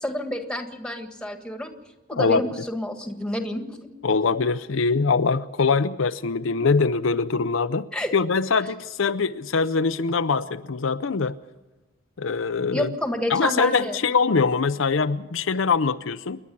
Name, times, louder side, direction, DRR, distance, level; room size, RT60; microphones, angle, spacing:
voice 1, 0.0-1.7 2.1-3.9 7.9-8.1 12.7-14.0, equal, 5° left, 6 dB, 1.7 m, -29 dB
voice 2, 2.1-2.4 4.0-7.9 8.1-11.4 12.2-12.9 13.3-16.4, left 4 dB, 70° left, 10 dB, 0.6 m, -23 dB
28.0 x 11.0 x 8.5 m, 1.1 s
head